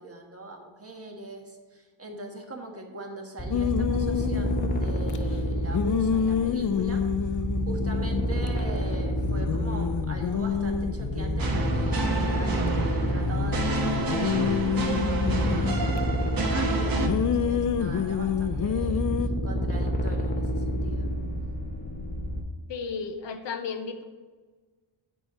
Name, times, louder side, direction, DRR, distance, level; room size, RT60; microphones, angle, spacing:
voice 1, 0.0-7.3 7.7-21.1, right 2 dB, 30° right, 1 dB, 1.5 m, -41 dB
sound 1, 3.4-22.4, equal, 20° left, 0.9 m, -29 dB
sound 2, 3.5-5.2 5.7-8.6 8.9-9.0 9.2-12.7 13.2-16.0 17.0-19.3, left 8 dB, 40° left, 0.4 m, -28 dB
sound 3, 11.4-17.1, right 3 dB, 45° right, 1.3 m, -29 dB
voice 2, 22.7-24.0, left 5 dB, 60° left, 7 dB, 0.9 m, -33 dB
8.0 x 4.6 x 6.5 m, 1.4 s
wide cardioid pair, 120°, 49 cm